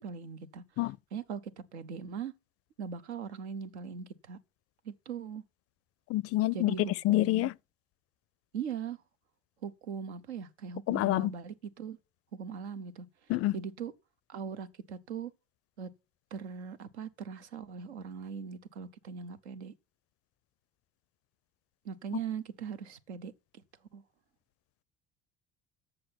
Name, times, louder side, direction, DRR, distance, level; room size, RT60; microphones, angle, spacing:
voice 1, 0.0-0.6 1.1-1.4 1.7-2.3 2.8-4.4 4.9-5.4 6.5-7.5 8.5-9.0 9.6-12.0 12.3-13.0 13.5-13.9 14.3-15.3 15.8-15.9 16.3-19.7 21.8-23.3 23.9-24.0, right 6 dB, 85° right, 0.8 m, -40 dB
voice 2, 6.1-7.5 10.9-11.3 13.3-13.6, left 17 dB, 45° left, 0.4 m, -27 dB
7.7 x 6.7 x 5.8 m
hypercardioid pair, 60°, 33 cm